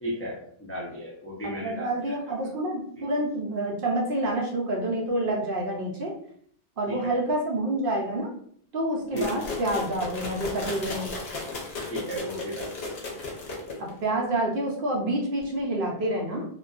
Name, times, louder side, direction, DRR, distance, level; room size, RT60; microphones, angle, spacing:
voice 1, 0.0-2.3 3.0-3.1 6.9-7.1 9.1-9.4 11.9-12.7, equal, 20° left, -5 dB, 0.4 m, -34 dB
voice 2, 1.4-6.1 6.8-8.3 8.7-11.1 13.8-16.5, right 1 dB, 65° right, -1 dB, 0.7 m, -28 dB
sound 1, 9.2-14.0, left 3 dB, 75° left, 0.9 m, -35 dB
2.5 x 2.2 x 2.3 m, 0.63 s
omnidirectional pair, 1.1 m